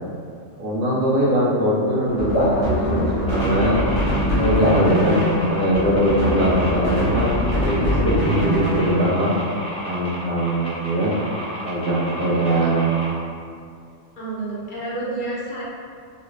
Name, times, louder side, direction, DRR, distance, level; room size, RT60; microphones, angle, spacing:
voice 1, 0.6-3.8 4.3-9.3 9.8-11.1 11.6-12.8, equal, 75° right, -5 dB, 0.9 m, -21 dB
sound 1, 2.1-9.2, equal, 25° right, 0.9 m, -23 dB
sound 2, 2.3-4.0 4.6-6.3, equal, 70° left, 1.3 m, -27 dB
sound 3, 3.3-13.1, right 1 dB, 10° left, 0.3 m, -32 dB
voice 2, 14.2-15.6, right 2 dB, 50° left, -8 dB, 0.8 m, -29 dB
2.9 x 2.4 x 3.1 m, 2.3 s
omnidirectional pair, 1.3 m